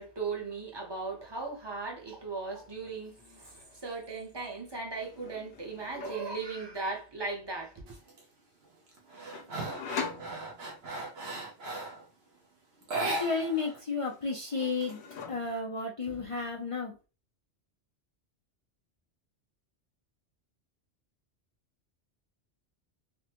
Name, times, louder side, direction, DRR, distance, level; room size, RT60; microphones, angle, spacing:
voice 1, 0.0-8.0, right 4 dB, 25° right, 0.7 m, -37 dB
sound 1, 2.6-2.9 3.2-4.0 5.0-6.3 9.3-10.9 13.1-13.8 14.0-15.8, left 6 dB, 70° left, 0.8 m, -43 dB
sound 2, 7.9-8.2 8.6-12.1 12.8-13.8 14.0-14.1 14.5-15.5, right 2 dB, 65° right, 1.1 m, -37 dB
voice 2, 13.0-15.0 15.3-17.0, left 4 dB, 45° left, 0.4 m, -32 dB
3.4 x 2.1 x 2.8 m
omnidirectional pair, 1.2 m